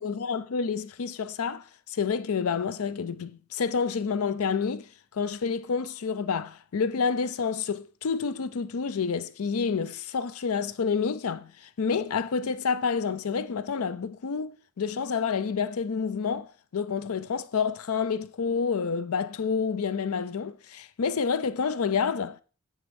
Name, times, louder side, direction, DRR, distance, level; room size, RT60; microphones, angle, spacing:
voice 1, 0.0-4.9 5.1-11.5 11.8-22.4, left 5 dB, 80° left, 0.5 m, -29 dB
9.4 x 3.6 x 5.2 m
head